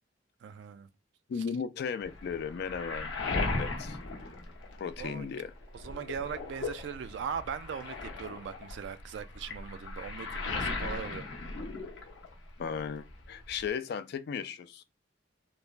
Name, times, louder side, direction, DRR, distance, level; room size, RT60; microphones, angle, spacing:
voice 1, 0.4-0.9 5.0-5.3 5.7-11.6, right 7 dB, 65° right, 0.3 m, -40 dB
voice 2, 1.3-4.0 4.8-5.5 12.6-14.8, left 6 dB, 60° left, 0.3 m, -36 dB
Waves surf, 2.0-5.2 5.6-12.5 12.7-13.7, left 3 dB, 90° left, 0.7 m, -37 dB
3.2 x 2.1 x 2.4 m
head